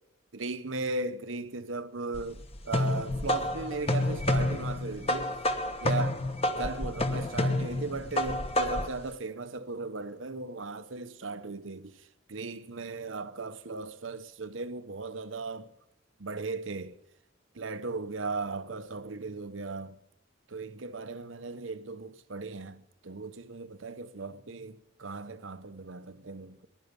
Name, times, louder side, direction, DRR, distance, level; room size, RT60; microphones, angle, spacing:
voice 1, 0.3-5.4 5.8-6.2 6.6-12.0 12.3-15.7 16.2-17.0 17.6-20.0 20.5-26.7, right 3 dB, 80° right, 1.0 m, -37 dB
sound 1, 2.1-9.0, left 1 dB, 30° left, 1.2 m, -29 dB
16.0 x 11.0 x 8.2 m
head